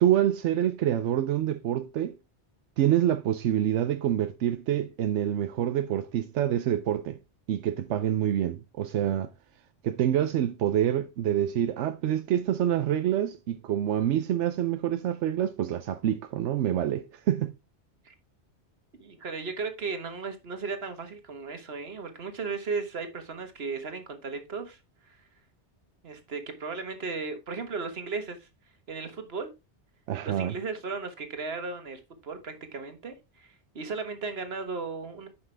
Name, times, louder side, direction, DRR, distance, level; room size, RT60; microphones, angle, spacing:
voice 1, 0.0-2.1 2.8-7.2 7.5-9.3 9.8-17.6 30.1-30.5, right 11 dB, 85° right, 0.9 m, -26 dB
voice 2, 19.0-24.8 25.1-25.2 26.0-28.5 28.9-29.5 30.2-35.3, right 4 dB, 60° right, 1.6 m, -36 dB
9.8 x 5.8 x 3.3 m
omnidirectional pair, 1.2 m